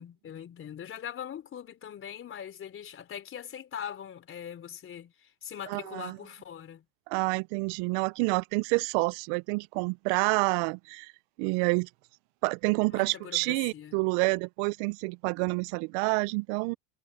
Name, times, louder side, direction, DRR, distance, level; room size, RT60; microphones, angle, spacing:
voice 1, 0.0-6.9 12.9-14.0, left 9 dB, 35° left, 3.9 m, -42 dB
voice 2, 5.7-6.2 7.1-11.1 11.4-11.9 12.4-16.8, right 29 dB, 70° right, 0.5 m, -28 dB
supercardioid pair, 105°, 35 cm